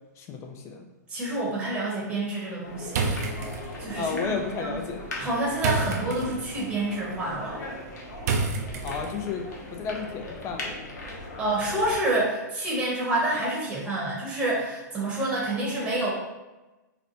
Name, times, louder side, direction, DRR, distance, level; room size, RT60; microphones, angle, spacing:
voice 1, 0.2-0.8 4.0-5.0 8.8-10.9, left 5 dB, 30° left, 3 dB, 0.5 m, -32 dB
voice 2, 1.1-3.2 3.8-4.3 4.6-4.7 5.2-7.6 11.4-16.1, right 1 dB, 10° right, -6 dB, 0.9 m, -28 dB
sound 1, 2.6-12.0, left 2 dB, 75° left, 0.8 m, -39 dB
sound 2, 2.9-9.4, right 4 dB, 60° right, 0.5 m, -32 dB
4.1 x 2.2 x 2.9 m, 1.1 s
hypercardioid pair, 125°, 10 cm